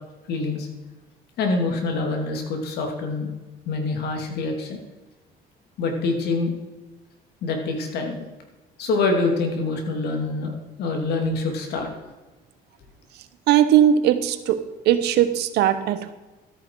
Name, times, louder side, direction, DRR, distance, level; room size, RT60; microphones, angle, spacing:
voice 1, 0.3-0.7 1.4-3.3 3.6-4.8 5.8-6.5 7.4-8.2 8.8-10.5 10.8-11.9, left 3 dB, 75° left, 3 dB, 2.8 m, -25 dB
voice 2, 13.5-16.1, right 10 dB, 80° right, 12 dB, 1.1 m, -19 dB
13.5 x 9.4 x 4.7 m, 1.2 s
cardioid pair, 110°, 17 cm